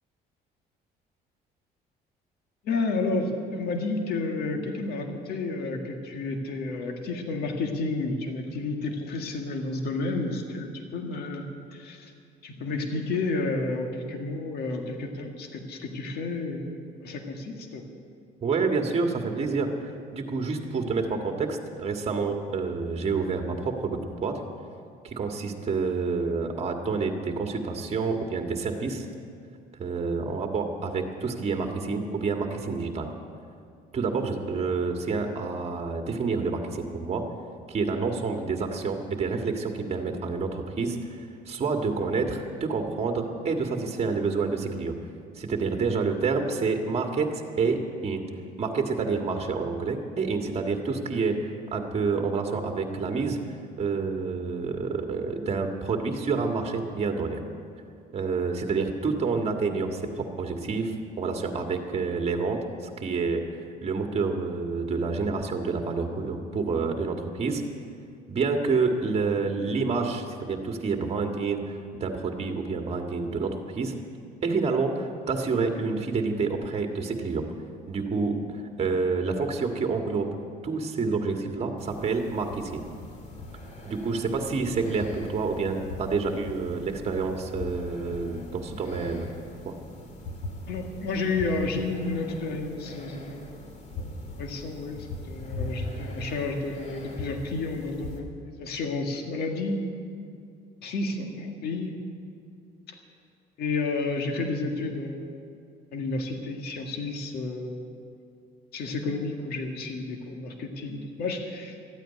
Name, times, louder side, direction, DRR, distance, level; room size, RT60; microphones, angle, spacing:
voice 1, 2.6-11.4 11.7-12.1 12.4-17.8 90.7-93.5 94.0-99.8 100.8-101.9 102.9-103.0 103.6-105.6 105.9-107.9 108.7-111.8, left 3 dB, 70° left, 3 dB, 1.9 m, -31 dB
voice 2, 18.4-19.7 20.1-24.4 25.0-29.1 29.8-33.1 33.9-37.2 37.7-41.2 41.5-44.9 45.4-48.2 48.6-53.4 53.8-57.4 58.1-63.4 63.8-67.6 68.3-73.9 74.4-77.4 77.9-80.3 80.6-82.8 83.8-89.3 89.7-89.8, right 4 dB, 35° right, 3 dB, 1.8 m, -28 dB
sound 1, 81.8-98.2, left 2 dB, 45° left, 2.4 m, -40 dB
13.5 x 9.1 x 9.8 m, 2.3 s
cardioid pair, 110°, 17 cm